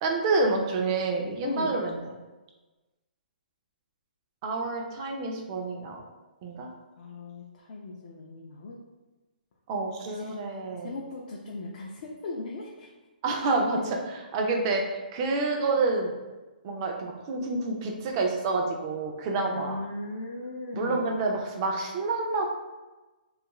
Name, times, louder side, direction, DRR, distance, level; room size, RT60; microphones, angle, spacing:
voice 1, 0.0-2.1 4.4-6.0 6.4-6.7 9.7-10.9 13.2-16.1 16.6-19.8 20.7-22.5, right 3 dB, 30° right, 2 dB, 0.4 m, -28 dB
voice 2, 1.4-1.8 7.0-8.8 10.1-10.4 10.8-12.9 19.4-21.1, left 2 dB, 50° left, -2 dB, 0.4 m, -37 dB
2.4 x 2.3 x 2.9 m, 1.2 s
hypercardioid pair, 155°, 5 cm